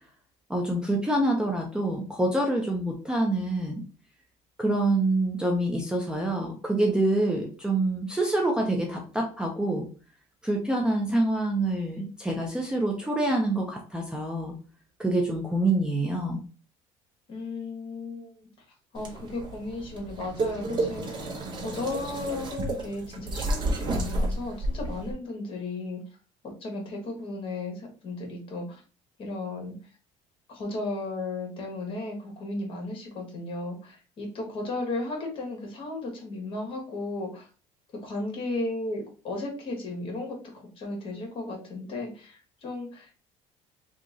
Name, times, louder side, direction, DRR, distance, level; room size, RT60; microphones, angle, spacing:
voice 1, 0.5-3.8 4.6-9.9 10.4-14.6 15.0-16.4, right 2 dB, 5° right, 0 dB, 0.5 m, -26 dB
voice 2, 17.3-18.5 18.9-21.2 21.6-26.0 26.4-28.8 29.2-29.8 30.5-37.5 38.0-40.4 40.8-43.2, left 2 dB, 40° left, 1 dB, 1.3 m, -35 dB
sound 1, 18.9-25.1, right 2 dB, 35° right, 0.8 m, -31 dB
2.9 x 2.4 x 3.7 m, 0.37 s
cardioid pair, 130°, 14 cm